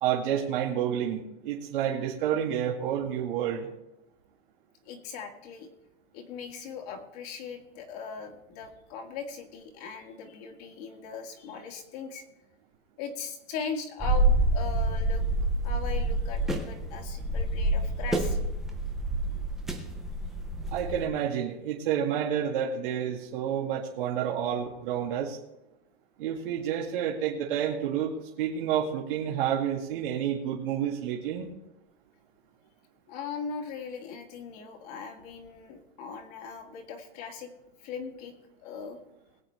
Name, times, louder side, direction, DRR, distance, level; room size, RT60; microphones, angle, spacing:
voice 1, 0.0-3.7 20.7-25.4 26.2-31.5, right 9 dB, 55° right, -3 dB, 2.1 m, -29 dB
voice 2, 4.9-5.7 6.1-12.2 13.0-15.3 15.6-18.4 33.1-37.5 37.8-38.3 38.6-39.0, left 5 dB, 40° left, 3 dB, 2.0 m, -39 dB
sound 1, 14.0-21.0, right 1 dB, ahead, 0.4 m, -27 dB
21.0 x 8.8 x 3.3 m, 0.90 s
supercardioid pair, 165°, 32 cm